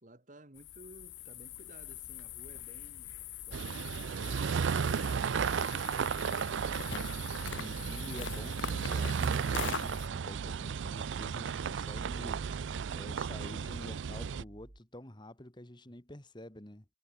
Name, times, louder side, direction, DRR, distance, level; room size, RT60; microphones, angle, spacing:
voice 1, 0.0-3.2, right 1 dB, 40° right, 2.4 m, -57 dB
sound 1, 0.6-10.1, left 8 dB, 80° left, 1.4 m, -43 dB
sound 2, 3.5-14.4, right 6 dB, 75° right, 0.4 m, -34 dB
sound 3, 4.7-14.8, right 1 dB, 60° right, 1.7 m, -54 dB
voice 2, 7.6-12.4 12.9-16.8, left 1 dB, 25° left, 2.1 m, -48 dB
head